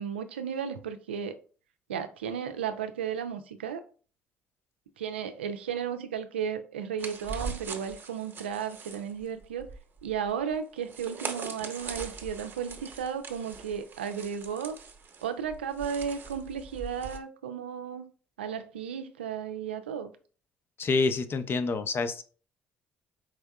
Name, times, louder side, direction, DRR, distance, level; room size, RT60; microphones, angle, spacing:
voice 1, 0.0-1.4 1.9-3.8 5.0-9.7 10.0-14.8 15.2-18.1 18.4-20.1, right 7 dB, 90° right, 0.4 m, -34 dB
sound 1, 7.0-17.2, right 4 dB, 40° right, 0.9 m, -41 dB
voice 2, 20.8-22.2, left 4 dB, 40° left, 0.6 m, -27 dB
4.7 x 3.5 x 2.2 m
hypercardioid pair, 55°, 6 cm